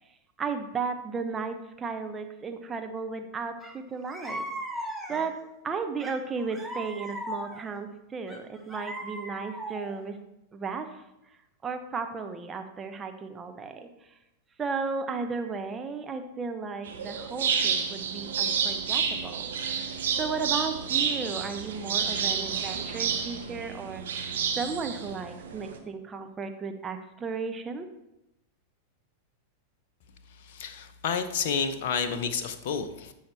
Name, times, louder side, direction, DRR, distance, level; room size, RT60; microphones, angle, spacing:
voice 1, 0.4-4.4 4.8-10.2 10.5-11.0 11.6-14.1 14.6-19.5 20.2-24.0 24.6-27.9, right 5 dB, 20° right, 6 dB, 0.9 m, -34 dB
sound 1, 3.6-3.7 4.1-5.4 6.0-7.8 8.3-10.0, right 1 dB, 5° right, 1.3 m, -38 dB
sound 2, 16.8-25.8, right 7 dB, 65° right, 1.1 m, -30 dB
voice 2, 30.5-33.1, left 6 dB, 50° left, 9 dB, 0.7 m, -30 dB
13.0 x 5.6 x 3.3 m, 0.89 s
figure-of-eight pair, 90°, 0 cm